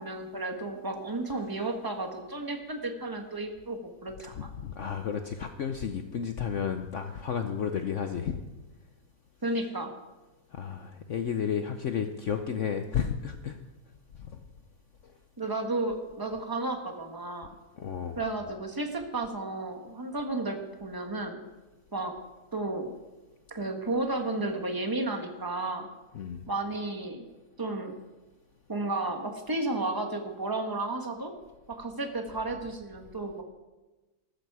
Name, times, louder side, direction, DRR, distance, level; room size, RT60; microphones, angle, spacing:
voice 1, 0.0-4.5 9.4-9.9 15.4-17.5 18.2-21.4 21.9-22.1 22.5-22.9 23.5-25.9 26.5-27.2 27.6-27.9 28.7-31.3 31.7-33.4, right 2 dB, 15° right, 5 dB, 1.0 m, -33 dB
voice 2, 4.4-8.4 10.5-13.6 14.2-14.4 17.8-18.2 26.1-26.4, left 7 dB, 90° left, 7 dB, 0.6 m, -32 dB
14.0 x 14.0 x 4.8 m, 1.1 s
omnidirectional pair, 2.3 m